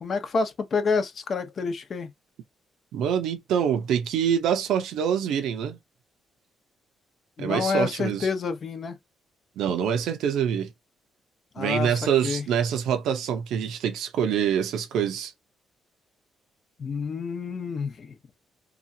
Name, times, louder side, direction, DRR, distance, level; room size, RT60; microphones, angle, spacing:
voice 1, 0.0-2.1 7.4-9.0 11.5-12.4 16.8-18.2, left 4 dB, 50° left, 0.9 m, -28 dB
voice 2, 2.9-5.8 7.4-8.3 9.6-10.7 11.6-15.3, right 8 dB, 80° right, 0.7 m, -25 dB
2.9 x 2.4 x 2.7 m
cardioid pair, 90°, 0 cm